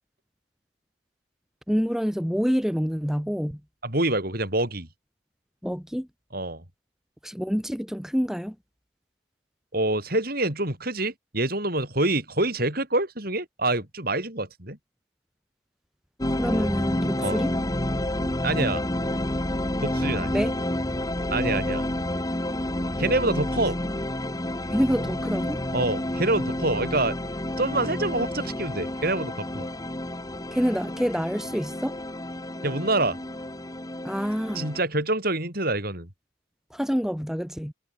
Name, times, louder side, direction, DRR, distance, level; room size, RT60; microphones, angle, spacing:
voice 1, 1.7-3.6 5.6-6.1 7.2-8.6 16.3-17.5 20.3-20.5 24.7-25.6 30.5-32.0 34.0-34.6 36.7-37.7, equal, ahead, 2.7 m, -27 dB
voice 2, 3.8-4.9 6.3-6.6 9.7-14.8 17.2-17.4 18.4-18.8 19.8-20.4 21.3-21.8 23.0-23.8 25.7-27.1 27.6-29.7 32.6-33.2 34.5-36.1, right 2 dB, 50° right, 6.7 m, -26 dB
sound 1, 16.2-34.8, left 1 dB, 20° left, 1.5 m, -29 dB
head